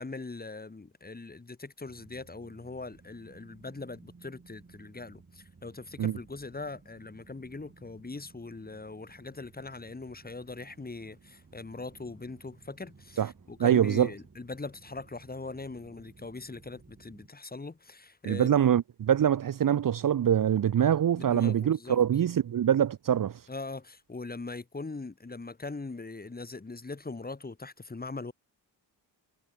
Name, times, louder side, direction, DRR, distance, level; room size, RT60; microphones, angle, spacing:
voice 1, 0.0-18.6 21.1-22.0 23.5-28.3, left 3 dB, 20° left, 1.8 m, -41 dB
sound 1, 1.9-17.3, right 4 dB, 30° right, 4.9 m, -57 dB
voice 2, 13.6-14.1 18.2-23.4, right 9 dB, 50° right, 0.6 m, -24 dB
wide cardioid pair, 160°, 43 cm